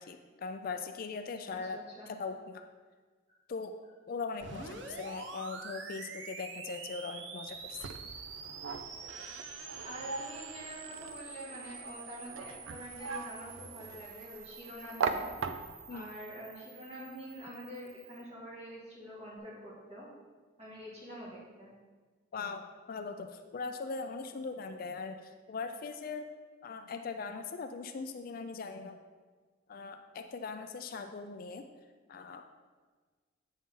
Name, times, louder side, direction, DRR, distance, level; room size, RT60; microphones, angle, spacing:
voice 1, 0.0-1.8 2.1-2.6 3.5-3.7 4.1-7.8 15.9-16.1 22.3-26.3 26.6-29.0 29.7-31.7 32.1-32.5, left 4 dB, 45° left, 7 dB, 0.4 m, -40 dB
voice 2, 1.5-2.1 4.4-4.7 9.8-15.3 15.9-20.1 20.6-21.7, equal, 30° right, -6 dB, 2.1 m, -46 dB
sound 1, 4.4-18.3, right 4 dB, 65° right, 0.8 m, -47 dB
sound 2, 7.5-16.0, right 5 dB, 85° right, 0.5 m, -40 dB
8.3 x 5.3 x 3.8 m, 1.4 s
head